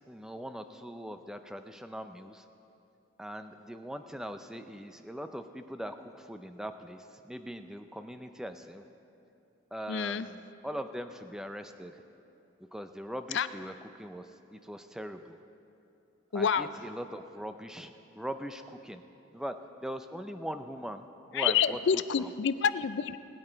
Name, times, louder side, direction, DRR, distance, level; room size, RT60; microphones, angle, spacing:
voice 1, 0.1-2.4 3.2-8.8 9.7-11.9 12.7-14.2 14.5-15.4 16.3-19.0 19.3-21.1 21.3-22.3, equal, 5° right, 8 dB, 0.4 m, -41 dB
voice 2, 9.9-10.3 13.3-13.5 16.3-16.7 21.3-23.2, left 7 dB, 60° left, 13 dB, 0.4 m, -28 dB
20.0 x 8.8 x 4.5 m, 2.8 s
head